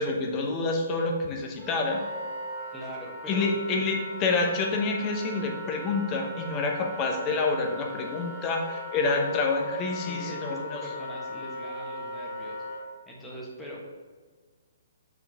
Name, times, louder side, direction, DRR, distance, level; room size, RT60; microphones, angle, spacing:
voice 1, 0.0-2.0 3.3-10.8, left 3 dB, 25° left, 2 dB, 1.1 m, -28 dB
Wind instrument woodwind instrument, 1.6-12.8, left 1 dB, 45° left, 2.0 m, -38 dB
voice 2, 2.7-3.5 10.1-12.6 13.1-13.9, equal, 5° left, -4 dB, 1.5 m, -41 dB
6.3 x 5.9 x 3.6 m, 1.4 s
figure-of-eight pair, 130°, 0 cm